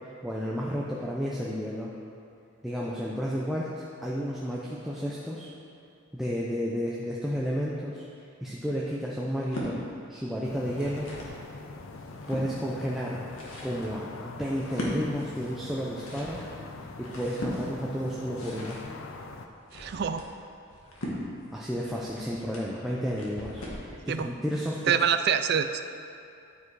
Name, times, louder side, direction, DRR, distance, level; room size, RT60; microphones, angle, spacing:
voice 1, 0.2-1.9 2.6-5.5 6.1-8.0 8.4-9.8 10.1-11.1 12.3-13.2 13.6-16.4 17.0-18.8 21.5-24.9, equal, ahead, -5 dB, 0.5 m, -32 dB
sound 1, 9.3-9.7 10.5-11.4 11.9-12.5 13.1-23.9, equal, 85° left, 1.7 m, -39 dB
sound 2, 10.4-19.5, left 3 dB, 65° left, 0.5 m, -43 dB
voice 2, 19.7-20.2 24.1-24.3 24.9-25.8, right 7 dB, 50° right, 9 dB, 0.3 m, -25 dB
11.0 x 4.8 x 4.7 m, 2.5 s
head